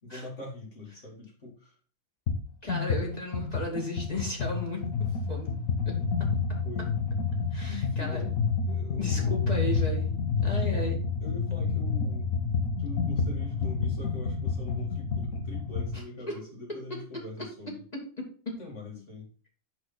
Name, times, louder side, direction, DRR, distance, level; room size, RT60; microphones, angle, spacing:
voice 1, 0.0-1.7 6.6-6.9 7.7-8.3 8.7-9.3 10.4-10.7 11.2-12.3 12.8-17.8 18.6-19.3, left 2 dB, 60° left, -2 dB, 2.9 m, -43 dB
sound 1, 2.3-2.4 2.7-16.0, left 5 dB, 80° left, 1.5 m, -29 dB
voice 2, 2.6-4.9 5.3-5.5 5.8-6.3 7.5-8.2 9.0-11.0 15.9-16.4 16.9-17.0 17.9-18.0 18.5-18.6, left 1 dB, 30° left, -2 dB, 2.2 m, -35 dB
7.7 x 6.0 x 4.0 m, 0.41 s
omnidirectional pair, 1.4 m